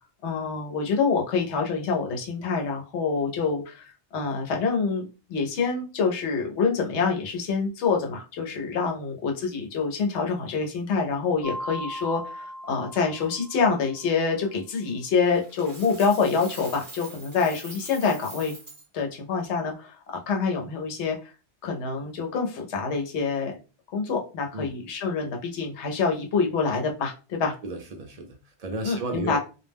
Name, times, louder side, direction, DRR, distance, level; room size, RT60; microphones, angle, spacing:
voice 1, 0.2-18.6 18.9-20.0 20.3-21.3 21.6-23.6 23.9-27.5 28.8-29.4, left 5 dB, 85° left, 2 dB, 1.0 m, -26 dB
Mallet percussion, 11.4-14.0, equal, 25° left, 0.4 m, -38 dB
Coin (dropping), 15.3-18.8, right 2 dB, 20° right, 0.7 m, -43 dB
voice 2, 27.6-29.4, right 2 dB, 60° right, 4 dB, 0.4 m, -33 dB
2.3 x 2.1 x 3.3 m, 0.32 s
omnidirectional pair, 1.1 m